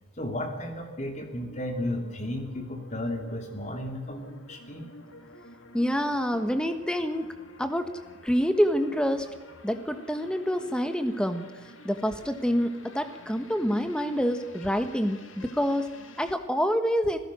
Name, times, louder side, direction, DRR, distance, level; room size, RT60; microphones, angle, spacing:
voice 1, 0.2-4.9, left 1 dB, 35° left, 4 dB, 3.0 m, -34 dB
sound 1, 1.1-16.4, left 2 dB, 70° left, 2.2 m, -50 dB
voice 2, 5.7-7.3 7.6-7.9 8.2-9.3 9.6-11.5 11.8-17.2, equal, 5° left, 8 dB, 1.4 m, -27 dB
27.0 x 16.5 x 6.4 m, 1.4 s
head